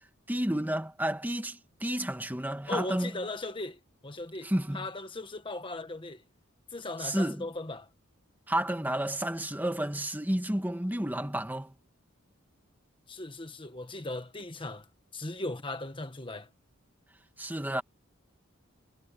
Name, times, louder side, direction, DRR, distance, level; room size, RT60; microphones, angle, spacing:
voice 1, 0.3-3.1 4.4-4.9 7.0-7.4 8.5-11.7 17.4-17.8, right 1 dB, 10° right, 1.7 m, -31 dB
voice 2, 2.7-6.2 6.7-7.9 13.1-14.9 15.1-16.5, left 2 dB, 25° left, 1.5 m, -38 dB
head